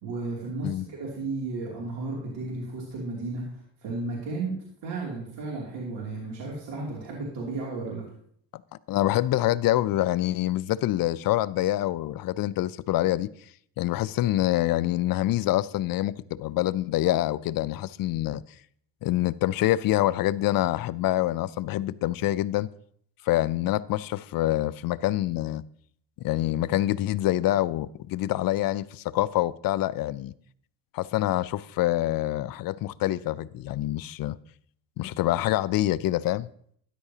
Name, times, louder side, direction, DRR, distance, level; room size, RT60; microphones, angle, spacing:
voice 1, 0.0-4.5 4.8-8.1, right 3 dB, 80° right, 2.8 m, -34 dB
voice 2, 8.9-13.3 13.8-18.4 19.0-22.7 23.2-25.6 26.2-30.3 30.9-34.4 35.0-36.5, left 15 dB, 55° left, 0.5 m, -26 dB
13.0 x 9.9 x 2.8 m
cardioid pair, 95°, 41 cm